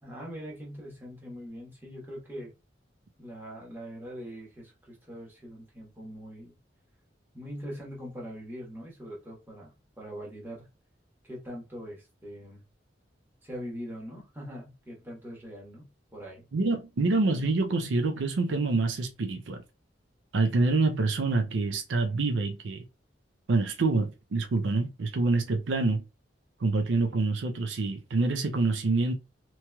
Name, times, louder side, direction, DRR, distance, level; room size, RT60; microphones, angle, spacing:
voice 1, 0.0-2.5 3.2-6.5 7.3-10.7 11.2-12.6 13.4-16.5, equal, 10° right, 1.2 m, -42 dB
voice 2, 16.5-19.6 20.3-22.8 23.5-26.0 26.6-29.1, right 3 dB, 90° right, 0.5 m, -26 dB
3.0 x 2.9 x 2.2 m
head